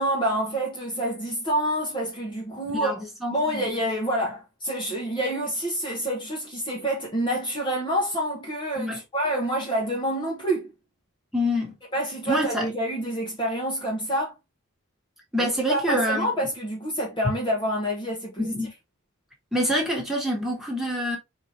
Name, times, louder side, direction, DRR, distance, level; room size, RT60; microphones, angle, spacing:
voice 1, 0.0-3.0 3.3-10.7 11.9-14.4 15.4-18.5, right 1 dB, 20° left, 1.0 m, -27 dB
voice 2, 2.5-3.7 8.8-9.0 11.3-11.7 12.3-12.7 15.3-16.3 18.4-18.7 19.5-21.2, equal, ahead, 1.6 m, -26 dB
4.6 x 2.8 x 3.1 m
head